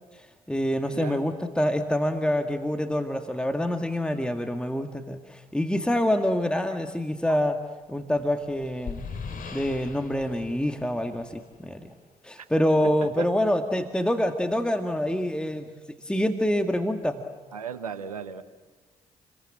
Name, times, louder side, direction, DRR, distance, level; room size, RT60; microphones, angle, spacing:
voice 1, 0.1-7.6 7.9-9.0 9.5-11.9 12.2-17.2, left 1 dB, 5° left, 5 dB, 2.0 m, -26 dB
voice 2, 0.9-1.2 6.7-6.8 7.3-7.4 12.4-12.5 12.8-13.3 17.5-18.4, right 7 dB, 90° right, 13 dB, 1.0 m, -36 dB
sound 1, 8.0-11.7, left 5 dB, 50° left, 3.2 m, -40 dB
30.0 x 22.0 x 7.7 m, 1.4 s
figure-of-eight pair, 40°, 18 cm